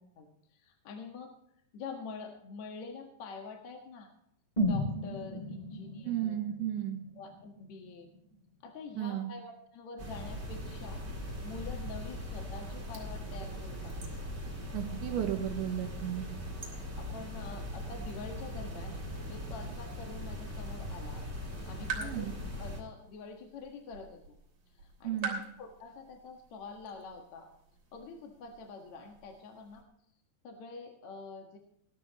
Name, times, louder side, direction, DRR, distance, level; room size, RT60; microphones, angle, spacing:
voice 1, 0.2-1.3 1.7-4.1 4.6-6.4 7.2-8.1 8.6-11.0 11.4-14.0 17.0-18.9 19.3-22.3 22.6-24.4 24.8-27.5 27.9-29.8 30.4-31.6, left 4 dB, 55° left, 3 dB, 2.0 m, -46 dB
sound 1, 4.6-8.5 8.8-8.9, equal, 10° left, 2.2 m, -35 dB
voice 2, 6.0-7.0 9.0-9.3 14.7-16.3 22.0-22.3 25.0-25.4, right 11 dB, 80° right, 4 dB, 3.4 m, -34 dB
sound 2, 10.0-22.8, equal, 15° right, 2.7 m, -40 dB
sound 3, 10.3-29.8, right 5 dB, 45° right, 4.3 m, -49 dB
19.0 x 12.5 x 3.0 m, 0.72 s
omnidirectional pair, 5.3 m